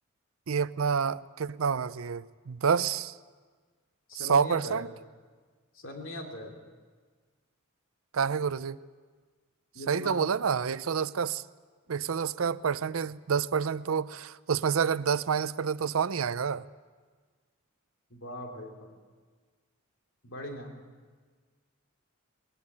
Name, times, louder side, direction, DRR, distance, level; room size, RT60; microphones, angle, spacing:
voice 1, 0.5-3.2 4.1-4.9 8.1-8.8 9.9-11.4 11.9-16.6, right 6 dB, 85° right, 16 dB, 0.6 m, -28 dB
voice 2, 4.1-4.8 5.7-6.6 9.7-10.3 18.1-19.0 20.2-20.8, left 1 dB, 70° left, 2 dB, 3.0 m, -40 dB
21.0 x 17.5 x 9.5 m, 1.5 s
head